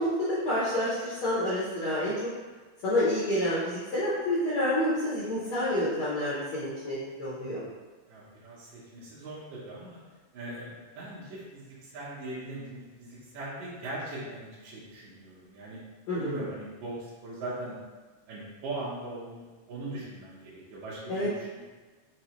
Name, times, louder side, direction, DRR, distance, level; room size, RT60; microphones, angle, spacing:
voice 1, 0.0-2.1 2.8-7.6 16.1-16.4 21.1-21.3, left 1 dB, 70° left, -10 dB, 1.3 m, -28 dB
voice 2, 8.1-10.0 10.3-15.8 16.2-17.8 18.3-21.6, right 2 dB, 80° right, -7 dB, 2.1 m, -40 dB
5.3 x 2.1 x 2.9 m, 1.3 s
omnidirectional pair, 3.3 m